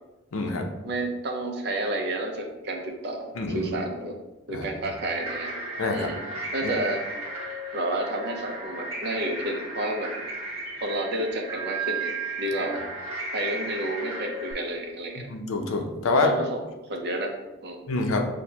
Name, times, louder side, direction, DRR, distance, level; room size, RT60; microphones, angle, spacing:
voice 1, 0.3-0.7 3.4-3.7 4.5-4.7 5.8-6.1 6.6-6.7 15.2-16.3 17.9-18.3, left 3 dB, 75° left, 3 dB, 0.6 m, -26 dB
voice 2, 0.8-4.2 4.5-5.5 5.9-6.2 6.5-7.0 7.7-10.1 10.8-12.1 12.4-12.8 13.3-15.3 16.2-17.3 17.6-17.8, right 1 dB, 50° right, 3 dB, 0.6 m, -30 dB
sound 1, 4.9-14.5, right 2 dB, 30° right, 1.5 m, -34 dB
6.3 x 2.2 x 2.8 m, 1.0 s
head